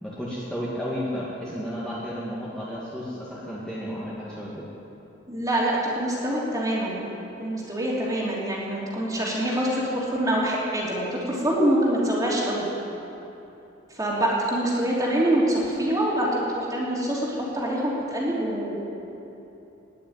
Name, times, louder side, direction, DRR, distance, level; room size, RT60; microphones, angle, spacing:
voice 1, 0.0-4.7, equal, 5° left, -9 dB, 2.2 m, -32 dB
voice 2, 5.3-7.0 7.4-12.7 13.9-18.8, right 1 dB, 20° right, -5 dB, 3.2 m, -25 dB
19.5 x 6.9 x 9.4 m, 2.9 s
head